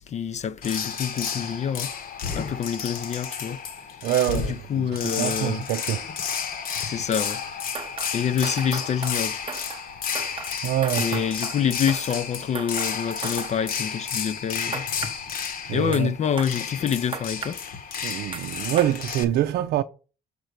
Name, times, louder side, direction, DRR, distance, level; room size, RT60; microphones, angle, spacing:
voice 1, 0.0-1.9 2.4-3.6 4.3-5.7 6.8-7.4 8.1-9.4 11.0-14.9 15.7-17.6, left 8 dB, 40° left, 0.6 m, -27 dB
sound 1, 0.6-19.2, left 7 dB, 60° left, 1.3 m, -32 dB
voice 2, 4.0-6.0 10.6-11.2 15.7-16.1 18.0-19.8, right 12 dB, 70° right, 0.6 m, -25 dB
sound 2, 7.3-7.5 7.7-9.9 10.1-12.3 12.5-13.5 14.7-15.2 15.9-16.0 16.4-16.5 17.1-17.6 18.3-18.4 18.8-18.9, right 5 dB, 30° right, 1.0 m, -36 dB
6.7 x 4.4 x 6.6 m
cardioid pair, 110°, 17 cm